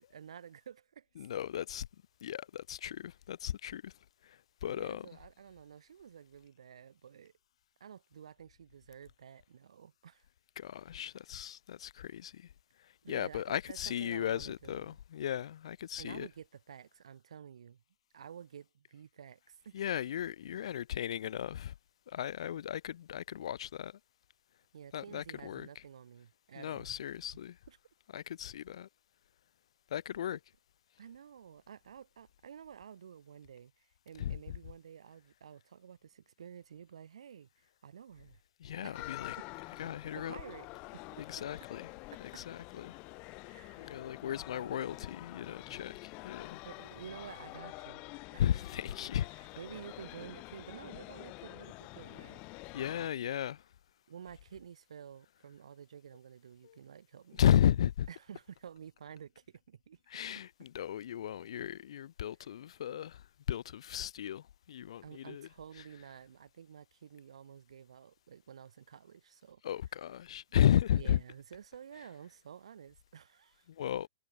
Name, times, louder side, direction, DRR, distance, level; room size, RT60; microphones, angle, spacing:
voice 1, 0.1-1.1 4.6-7.3 7.8-10.3 13.0-15.0 16.0-17.8 18.1-19.7 24.7-27.0 27.7-27.8 31.0-37.5 37.8-38.4 38.8-39.4 40.1-40.7 40.9-41.3 43.5-44.1 46.6-48.0 48.3-48.4 49.3-52.4 54.1-57.4 58.1-60.0 65.0-69.6 71.0-73.7, right 8 dB, 85° right, 7.7 m, -51 dB
voice 2, 1.2-1.9 2.2-3.9 4.2-5.1 10.6-12.5 12.8-16.3 19.7-21.7 22.1-24.0 24.9-25.7 26.6-27.6 28.1-28.9 29.9-30.4 34.2-34.6 38.6-39.4 39.8-40.4 41.3-41.9 42.3-43.0 43.8-46.6 48.4-49.3 52.7-53.6 56.6-56.8 57.4-58.1 60.1-65.5 69.6-71.2 73.7-74.1, left 10 dB, 70° left, 1.4 m, -34 dB
sound 1, 38.9-53.1, left 27 dB, 35° left, 5.7 m, -47 dB
hypercardioid pair, 140°, 3 cm